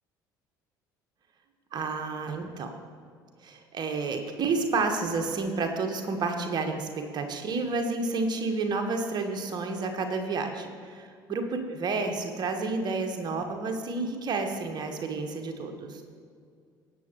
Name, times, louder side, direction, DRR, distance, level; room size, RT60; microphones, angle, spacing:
voice 1, 1.7-2.7 3.4-16.0, right 3 dB, 40° right, 4 dB, 1.4 m, -30 dB
18.5 x 7.2 x 3.1 m, 2.2 s
figure-of-eight pair, 55°, 11 cm